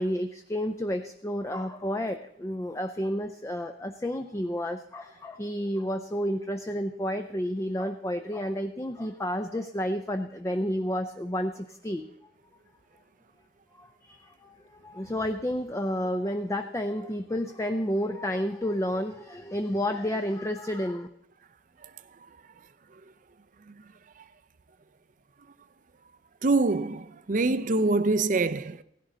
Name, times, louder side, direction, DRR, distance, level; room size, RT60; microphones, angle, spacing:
voice 1, 0.0-12.1 13.7-21.1, equal, 15° left, 0.5 m, -31 dB
voice 2, 26.4-28.8, right 3 dB, 45° right, 0.6 m, -25 dB
16.0 x 11.0 x 3.9 m
head